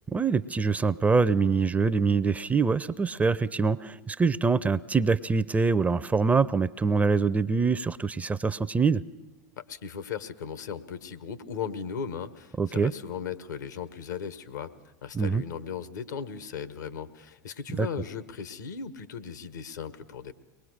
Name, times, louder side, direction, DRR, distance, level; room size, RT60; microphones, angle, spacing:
voice 1, 0.1-9.0 12.6-12.9 15.1-15.4 17.8-17.9, right 4 dB, 15° right, 17 dB, 0.6 m, -24 dB
voice 2, 9.6-14.7 15.0-20.3, left 7 dB, 75° left, 13 dB, 1.3 m, -37 dB
23.5 x 20.0 x 6.5 m, 1.1 s
figure-of-eight pair, 80°, 10 cm